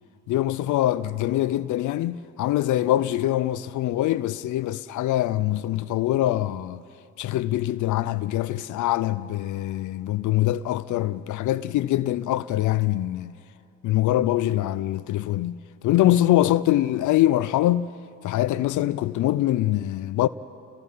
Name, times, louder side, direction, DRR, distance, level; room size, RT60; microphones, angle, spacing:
voice 1, 0.3-6.8 7.2-13.3 13.8-17.9 18.2-20.3, left 14 dB, 75° left, 0.5 m, -24 dB
30.0 x 20.0 x 5.6 m
cardioid pair, 90°, 30 cm